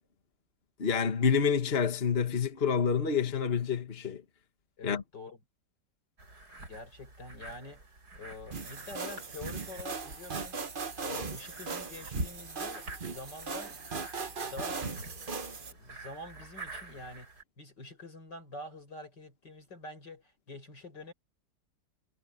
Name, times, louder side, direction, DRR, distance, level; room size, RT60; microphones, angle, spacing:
voice 1, 0.8-4.2 4.8-5.0, left 6 dB, 35° left, 1.8 m, -28 dB
voice 2, 4.8-5.4 6.6-7.8 8.2-10.6 11.0-15.1 15.7-17.3 17.6-21.1, left 2 dB, 80° left, 6.8 m, -46 dB
sound 1, 6.2-17.4, right 2 dB, 65° right, 8.7 m, -46 dB
sound 2, 8.5-15.7, right 4 dB, 35° right, 1.2 m, -39 dB
omnidirectional pair, 1.9 m